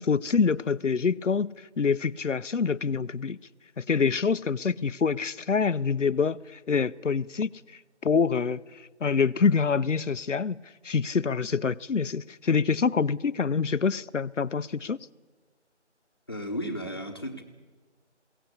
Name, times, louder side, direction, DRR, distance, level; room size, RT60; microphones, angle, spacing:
voice 1, 0.0-3.4 3.8-7.5 8.0-10.6 10.8-15.0, left 5 dB, 85° left, 0.8 m, -26 dB
voice 2, 16.3-17.4, equal, 20° left, 1.2 m, -34 dB
22.0 x 17.0 x 8.4 m
figure-of-eight pair, 175°, 36 cm